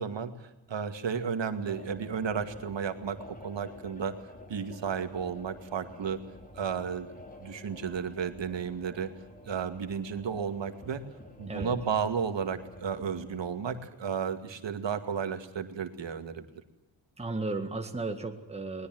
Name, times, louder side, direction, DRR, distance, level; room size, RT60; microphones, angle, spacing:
voice 1, 0.0-4.1 4.5-6.2 6.5-7.1 7.4-9.1 9.5-11.0 11.4-16.4, right 6 dB, 75° right, 8 dB, 2.3 m, -33 dB
sound 1, 1.6-13.8, left 1 dB, 20° left, 4.5 m, -49 dB
voice 2, 17.2-18.9, right 3 dB, 15° right, 4 dB, 1.8 m, -34 dB
21.5 x 20.5 x 7.8 m, 0.89 s
wide cardioid pair, 135°, 44 cm